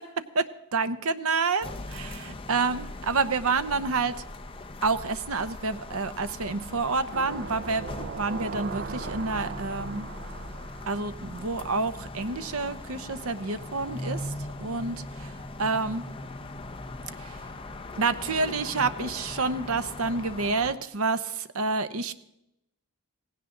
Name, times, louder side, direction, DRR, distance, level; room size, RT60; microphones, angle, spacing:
voice 1, 0.3-4.2 4.8-10.1 10.9-14.3 14.6-15.3 15.6-16.1 17.2-17.4 18.0-22.1, right 4 dB, 75° right, 12 dB, 0.9 m, -28 dB
sound 1, 1.6-20.7, left 2 dB, 25° left, 0.8 m, -40 dB
sound 2, 7.1-12.0 12.4-12.5, right 5 dB, 50° right, 0.5 m, -40 dB
17.5 x 16.5 x 3.8 m, 0.83 s
head